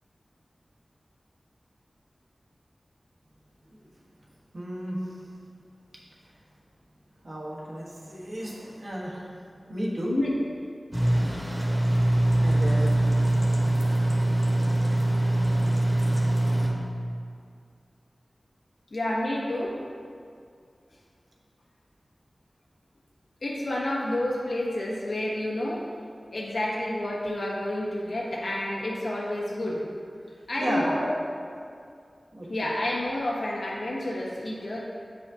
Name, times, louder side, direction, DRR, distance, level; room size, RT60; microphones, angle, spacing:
voice 1, 4.5-5.2 7.2-9.3 9.7-10.1 12.4-12.9 30.6-31.0 32.3-32.7, equal, 60° right, -4 dB, 1.2 m, -33 dB
sound 1, 10.9-16.7, right 1 dB, 25° right, 1.2 m, -23 dB
voice 2, 18.9-19.8 23.4-25.9 26.3-29.8 30.5-31.2 32.5-34.8, left 1 dB, 85° left, -5 dB, 1.2 m, -29 dB
8.3 x 4.8 x 2.7 m, 2.3 s
wide cardioid pair, 80°, 0 cm